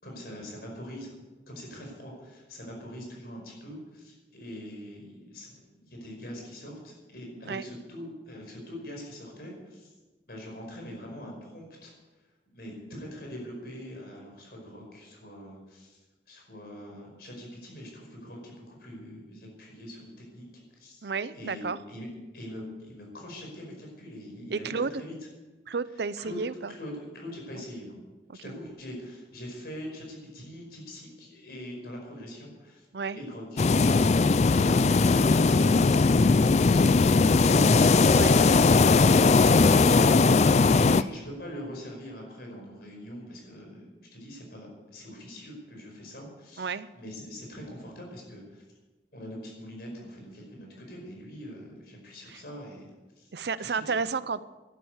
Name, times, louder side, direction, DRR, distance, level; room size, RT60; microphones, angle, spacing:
voice 1, 0.0-1.1 1.5-9.9 10.3-11.9 12.5-16.0 16.3-20.5 20.7-21.1 21.3-22.1 22.3-25.1 25.9-27.9 28.4-34.4 34.6-48.6 49.1-52.9 53.2-53.3 53.6-53.8, equal, 60° left, 0 dB, 5.1 m, -43 dB
voice 2, 21.0-21.8 24.5-25.0 25.7-26.7 32.9-33.2 38.1-38.4 46.6-46.9 53.3-54.4, right 5 dB, 70° right, 16 dB, 0.6 m, -31 dB
sound 1, 33.6-41.0, left 4 dB, 40° left, 0.4 m, -19 dB
12.0 x 11.0 x 8.2 m, 1.2 s
head